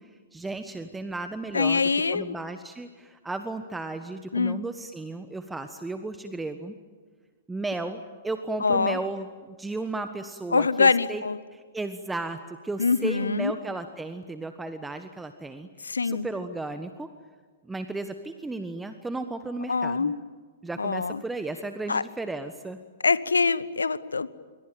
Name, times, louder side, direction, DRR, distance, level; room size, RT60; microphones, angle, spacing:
voice 1, 0.3-6.7 7.5-9.3 9.6-11.2 11.5-15.7 16.0-17.1 17.6-20.1 20.6-22.8, right 2 dB, 10° right, 9 dB, 1.3 m, -34 dB
voice 2, 1.5-2.3 4.3-4.6 8.6-9.0 10.5-11.4 12.8-13.5 15.8-16.3 19.7-20.2 20.8-21.2 21.9-22.0 23.0-24.3, left 4 dB, 80° left, 17 dB, 1.0 m, -24 dB
28.0 x 24.0 x 9.0 m, 1.5 s
figure-of-eight pair, 110°, 0 cm